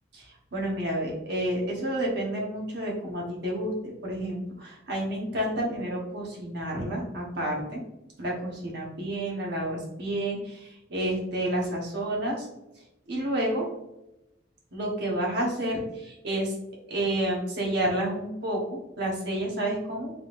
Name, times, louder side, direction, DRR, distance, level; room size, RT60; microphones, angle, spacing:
voice 1, 0.1-3.7 4.0-7.8 8.2-12.5 13.1-13.7 14.7-16.5 16.9-20.1, right 1 dB, 60° right, -2 dB, 1.2 m, -30 dB
3.7 x 3.4 x 2.5 m, 0.91 s
head